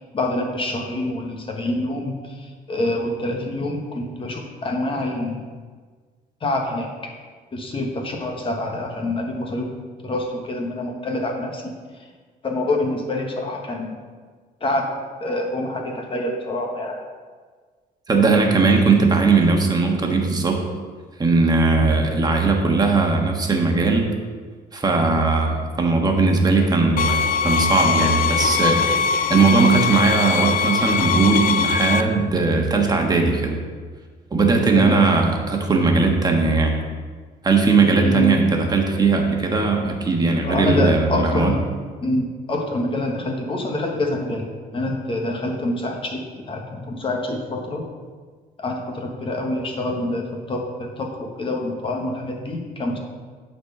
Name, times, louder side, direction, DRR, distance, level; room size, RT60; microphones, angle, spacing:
voice 1, 0.1-5.4 6.4-6.9 7.5-9.7 10.0-11.7 12.4-14.0 14.6-14.9 15.2-17.0 21.8-21.9 34.7-35.1 38.0-38.3 40.4-41.6 42.0-47.8 48.6-53.0, left 1 dB, 30° left, 1 dB, 1.4 m, -26 dB
voice 2, 18.1-20.6 21.2-24.1 24.7-28.9 29.3-33.6 34.3-36.7 37.4-41.5, right 4 dB, 25° right, 2 dB, 1.4 m, -18 dB
sound 1, 27.0-32.0, left 6 dB, 55° left, 0.5 m, -21 dB
9.1 x 4.4 x 6.6 m, 1.5 s
cardioid pair, 110°, 17 cm